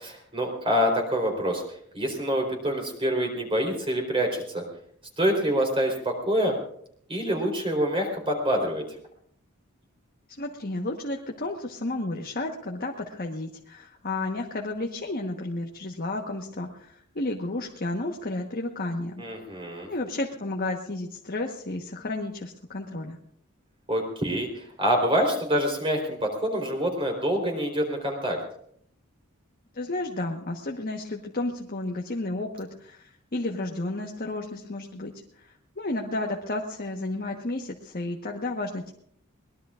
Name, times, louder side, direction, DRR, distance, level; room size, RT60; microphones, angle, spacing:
voice 1, 0.0-4.6 5.2-6.5 7.1-8.8 19.2-19.9 23.9-28.4, equal, 25° right, 2 dB, 4.0 m, -26 dB
voice 2, 10.4-19.2 19.9-23.2 29.7-38.9, left 2 dB, 45° left, 1 dB, 1.3 m, -32 dB
23.0 x 20.5 x 2.5 m, 0.66 s
head